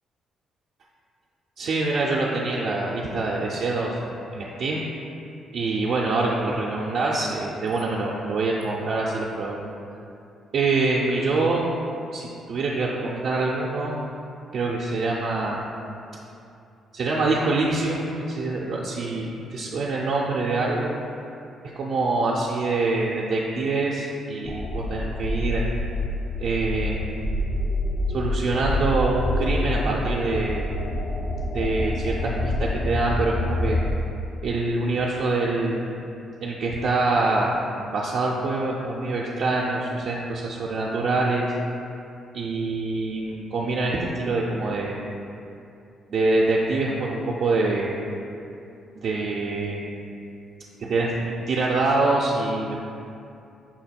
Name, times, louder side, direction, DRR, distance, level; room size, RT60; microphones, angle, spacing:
voice 1, 1.6-4.8 5.5-9.6 10.5-11.7 12.1-14.0 14.5-15.6 16.9-20.9 21.8-25.6 26.4-27.2 28.1-30.7 31.4-33.8 34.4-35.9 36.4-37.5 37.9-41.5 42.3-45.0 46.1-47.9 49.0-50.1 50.8-52.8, right 3 dB, 65° right, -4 dB, 0.4 m, -25 dB
sound 1, 24.4-33.9, left 1 dB, 45° left, 0.4 m, -27 dB
5.7 x 2.2 x 4.2 m, 2.6 s
cardioid pair, 90°, 0 cm